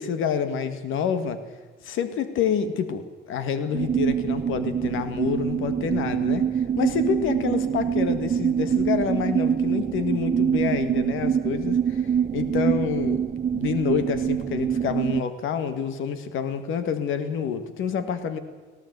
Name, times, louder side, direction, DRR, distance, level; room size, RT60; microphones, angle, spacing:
voice 1, 0.0-1.4 1.8-18.4, left 7 dB, 85° left, 11 dB, 1.8 m, -28 dB
sound 1, 3.7-15.2, right 8 dB, 35° right, 0.7 m, -25 dB
19.0 x 17.0 x 8.1 m, 1.4 s
cardioid pair, 90°, 20 cm